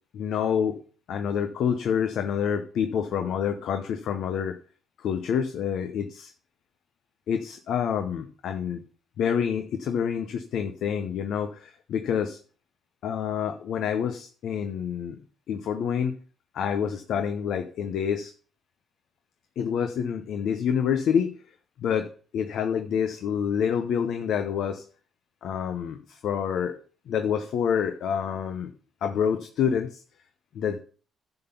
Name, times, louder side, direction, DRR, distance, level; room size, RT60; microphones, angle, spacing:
voice 1, 0.1-0.8 1.1-4.6 5.0-6.3 7.3-8.8 9.2-12.4 13.0-15.2 15.5-16.1 16.5-18.3 19.6-21.3 21.8-24.8 25.4-26.8 27.1-28.7 29.0-30.0 30.5-30.8, left 7 dB, 75° left, 7 dB, 0.8 m, -27 dB
11.0 x 3.9 x 6.9 m, 0.41 s
cardioid pair, 90°, 0 cm